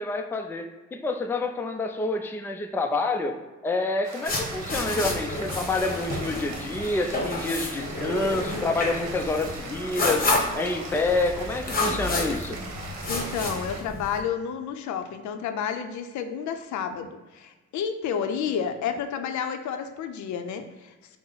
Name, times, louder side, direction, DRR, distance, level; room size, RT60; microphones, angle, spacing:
voice 1, 0.0-3.3 3.6-10.3 10.5-12.6, left 2 dB, 10° left, 5 dB, 0.3 m, -28 dB
sound 1, 4.0-13.8, right 3 dB, 60° right, 0.9 m, -40 dB
sound 2, 4.3-14.2, left 2 dB, 30° left, 1.0 m, -30 dB
voice 2, 13.1-21.2, left 7 dB, 75° left, 8 dB, 0.5 m, -31 dB
5.6 x 2.0 x 3.8 m, 1.2 s
cardioid pair, 90°, 30 cm